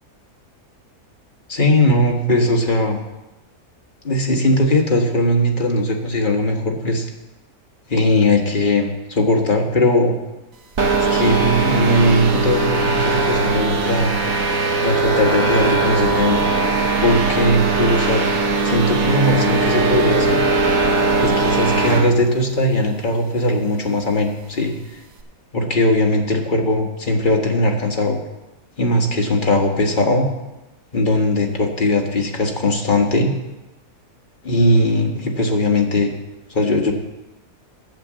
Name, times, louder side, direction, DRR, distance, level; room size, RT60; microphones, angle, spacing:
voice 1, 1.5-3.0 4.0-7.0 7.9-10.1 11.1-14.1 14.8-16.4 17.0-18.2 18.6-20.4 21.2-24.8 25.5-28.2 28.8-30.3 30.9-33.3 34.4-36.1 36.5-36.9, left 1 dB, 35° left, 2 dB, 1.4 m, -19 dB
sound 1, 10.8-22.1, right 3 dB, 65° right, 1.5 m, -19 dB
9.3 x 7.6 x 7.4 m, 1.0 s
omnidirectional pair, 1.6 m